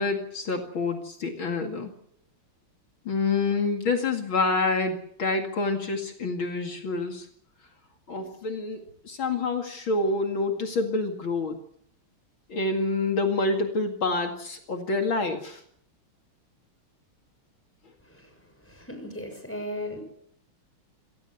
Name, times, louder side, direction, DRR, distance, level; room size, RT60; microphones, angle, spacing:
voice 1, 0.0-1.9 3.1-7.3 8.1-11.6 12.5-15.6, left 3 dB, 65° left, 4 dB, 3.0 m, -27 dB
voice 2, 18.6-20.0, left 1 dB, 5° left, 6 dB, 6.5 m, -36 dB
28.0 x 18.0 x 8.0 m, 0.69 s
omnidirectional pair, 2.4 m